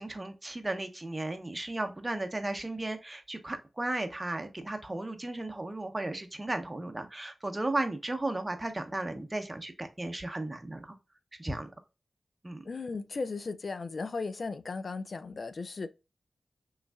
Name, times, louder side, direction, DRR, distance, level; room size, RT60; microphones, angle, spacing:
voice 1, 0.0-11.0 11.4-11.7 12.4-12.6, right 2 dB, 25° right, 0.7 m, -35 dB
voice 2, 12.7-15.9, left 4 dB, 60° left, 0.3 m, -36 dB
3.5 x 3.1 x 2.2 m
cardioid pair, 50°, 0 cm